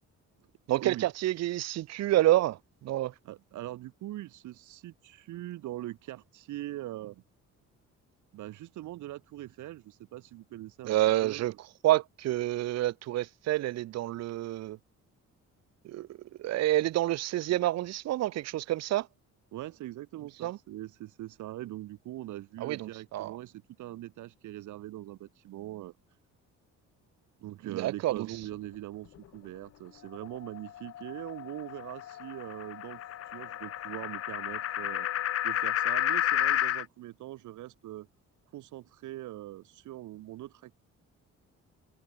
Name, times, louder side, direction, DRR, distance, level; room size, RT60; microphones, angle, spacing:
voice 1, 0.7-3.1 10.8-11.5 11.8-14.8 15.8-16.1 16.4-19.1 20.4-20.6 22.6-23.3 27.7-28.3, right 15 dB, 60° right, 0.7 m, -28 dB
voice 2, 3.2-7.2 8.3-11.0 11.2-11.6 19.5-25.9 27.4-33.0 33.3-35.1 35.4-38.1 38.5-40.7, right 15 dB, 85° right, 1.8 m, -42 dB
sound 1, 30.1-36.8, left 12 dB, 55° left, 1.0 m, -32 dB
open air
cardioid pair, 175°, 29 cm